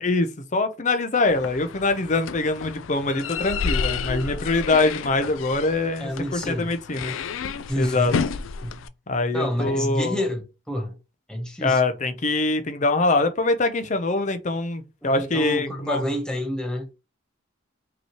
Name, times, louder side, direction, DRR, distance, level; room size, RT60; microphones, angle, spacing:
voice 1, 0.0-7.1 7.8-8.1 9.1-10.2 11.6-16.0, left 2 dB, 40° left, 0.6 m, -23 dB
sound 1, 1.3-8.9, left 5 dB, 90° left, 0.4 m, -31 dB
voice 2, 6.0-6.7 7.7-8.1 8.6-8.8 9.3-11.0 11.3-11.8 15.0-16.9, equal, 5° left, 0.8 m, -29 dB
5.4 x 3.0 x 2.9 m
head